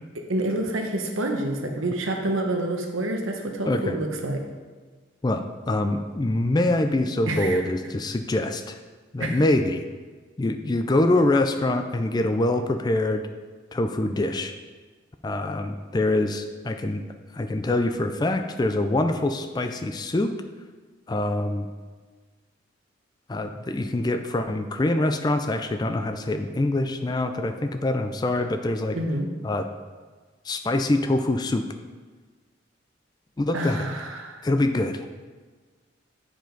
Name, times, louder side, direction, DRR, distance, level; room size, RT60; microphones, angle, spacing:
voice 1, 0.3-4.4 7.3-7.6 9.2-9.4 28.9-29.3 33.5-34.5, right 1 dB, 80° right, 3 dB, 1.0 m, -28 dB
voice 2, 3.7-4.0 5.2-8.8 9.1-9.8 10.4-13.3 13.7-14.5 15.2-17.0 17.3-20.3 21.1-21.7 23.3-29.0 29.4-29.7 30.5-31.6 33.4-33.8 34.4-35.1, left 2 dB, 20° left, 7 dB, 0.3 m, -24 dB
8.8 x 5.0 x 3.9 m, 1.4 s
head